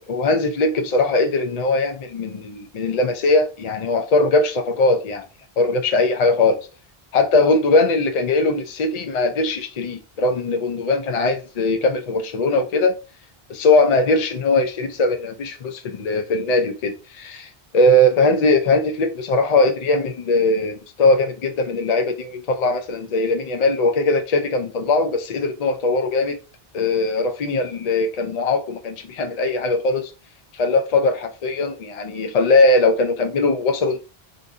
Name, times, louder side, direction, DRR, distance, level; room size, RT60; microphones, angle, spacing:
voice 1, 0.1-5.3 5.6-6.7 7.1-12.9 13.5-26.4 26.7-30.1 30.5-34.0, left 2 dB, 55° left, 0.5 m, -20 dB
2.6 x 2.5 x 3.5 m
omnidirectional pair, 1.0 m